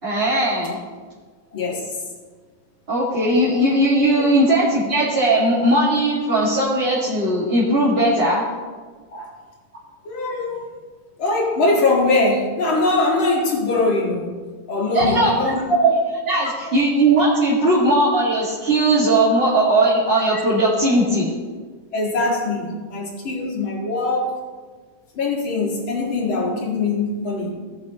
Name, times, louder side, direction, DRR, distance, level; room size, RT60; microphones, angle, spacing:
voice 1, 0.0-0.8 2.9-8.5 14.9-15.3 15.8-21.3, right 1 dB, 30° right, -9 dB, 2.1 m, -18 dB
voice 2, 1.5-1.9 9.1-9.3 10.0-10.7 11.2-14.4 14.7-15.6 16.7-16.8 19.1-19.2 20.3-20.4 21.9-24.3 25.1-27.5, left 2 dB, 70° left, -2 dB, 2.8 m, -22 dB
18.0 x 7.2 x 3.0 m, 1.5 s
omnidirectional pair, 2.3 m